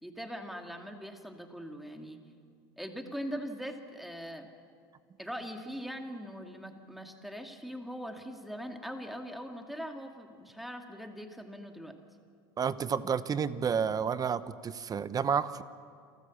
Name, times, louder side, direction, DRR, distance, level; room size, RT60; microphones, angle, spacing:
voice 1, 0.0-2.2 2.8-4.5 5.2-11.9, equal, ahead, 4 dB, 2.4 m, -41 dB
voice 2, 12.6-15.6, right 7 dB, 30° right, 15 dB, 0.8 m, -30 dB
28.5 x 13.5 x 7.3 m, 2.2 s
hypercardioid pair, 90°, 12 cm